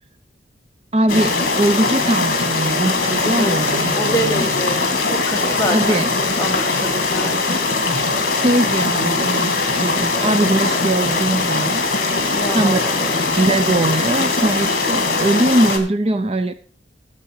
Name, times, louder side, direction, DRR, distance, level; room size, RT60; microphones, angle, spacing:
voice 1, 0.9-4.5 5.7-6.1 8.4-11.9 12.5-12.8 13.4-16.5, right 1 dB, 35° right, 10 dB, 0.6 m, -20 dB
sound 1, 1.1-15.8, left 3 dB, 55° left, 2.4 m, -20 dB
voice 2, 3.9-6.0 6.4-7.6 12.3-13.2, equal, 15° left, 2 dB, 1.7 m, -26 dB
13.5 x 7.7 x 4.8 m, 0.42 s
head